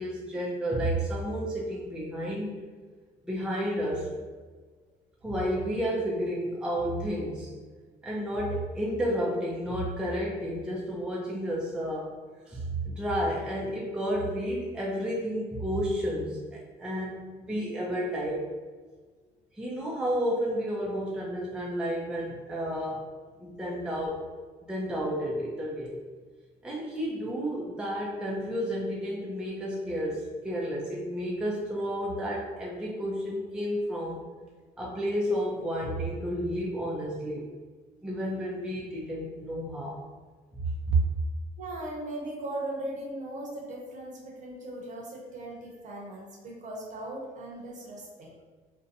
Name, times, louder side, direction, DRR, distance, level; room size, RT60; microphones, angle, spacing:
voice 1, 0.0-2.5 3.2-4.1 5.2-7.5 8.0-12.1 12.5-18.5 19.5-23.0 23.4-24.2 24.6-26.0 26.6-34.2 34.8-37.5 38.0-40.0 40.5-40.6 40.9-41.0, equal, 5° right, -5 dB, 0.4 m, -31 dB
voice 2, 41.6-48.3, right 1 dB, 45° right, -2 dB, 0.8 m, -38 dB
2.5 x 2.1 x 2.6 m, 1.4 s
cardioid pair, 110°, 17 cm